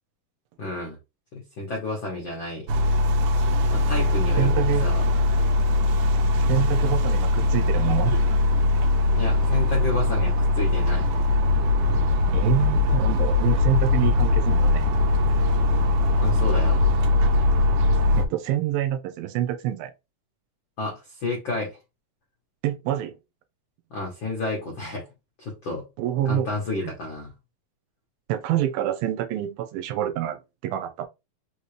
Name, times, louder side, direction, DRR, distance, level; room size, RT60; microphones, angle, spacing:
voice 1, 0.6-1.0 1.3-2.7 3.7-5.0 9.1-11.1 16.2-16.8 20.8-21.8 23.9-25.0 25.4-25.8 26.3-27.3, left 2 dB, 75° left, 1.1 m, -31 dB
sound 1, 2.7-18.3, left 3 dB, 75° right, 1.9 m, -21 dB
voice 2, 4.4-4.9 6.5-8.2 12.3-14.8 18.1-19.9 22.6-23.1 26.0-26.5 26.8-26.9 28.3-31.1, right 12 dB, 90° right, 2.5 m, -26 dB
5.4 x 2.8 x 3.2 m
omnidirectional pair, 4.3 m